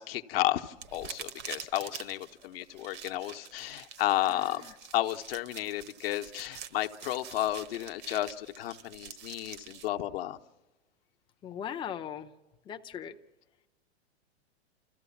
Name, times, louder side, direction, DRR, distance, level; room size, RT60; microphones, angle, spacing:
voice 1, 0.0-4.6 4.9-10.4, left 14 dB, 60° left, 1.0 m, -32 dB
sound 1, 0.8-9.9, right 8 dB, 30° right, 0.9 m, -46 dB
voice 2, 11.4-12.3 12.7-13.1, left 9 dB, 15° left, 0.6 m, -38 dB
29.5 x 14.5 x 7.1 m
hypercardioid pair, 120°, 33 cm